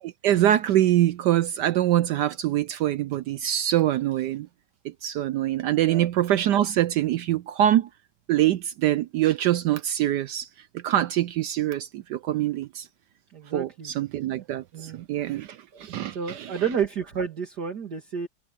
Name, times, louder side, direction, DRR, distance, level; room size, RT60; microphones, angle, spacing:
voice 1, 0.0-4.5 4.8-7.9 8.3-10.5 10.8-12.9 13.5-16.6, right 12 dB, 75° right, 1.0 m, -24 dB
voice 2, 13.3-13.9 14.3-14.4 14.7-15.1 15.7-15.9 16.1-18.3, right 7 dB, 50° right, 2.8 m, -30 dB
omnidirectional pair, 2.3 m